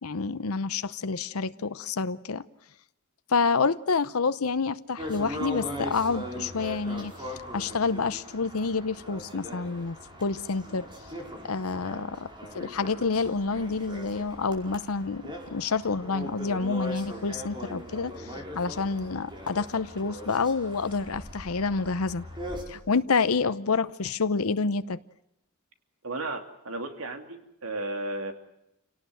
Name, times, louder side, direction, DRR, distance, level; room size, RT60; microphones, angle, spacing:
voice 1, 0.0-2.4 3.3-7.1 7.5-10.9 11.4-12.3 12.5-22.2 22.7-25.0, left 4 dB, 85° left, 13 dB, 0.8 m, -28 dB
sound 1, 5.0-22.6, equal, 20° right, 5.1 m, -40 dB
voice 2, 26.0-28.3, right 2 dB, 75° right, 6 dB, 2.8 m, -34 dB
28.0 x 18.0 x 7.9 m, 0.86 s
head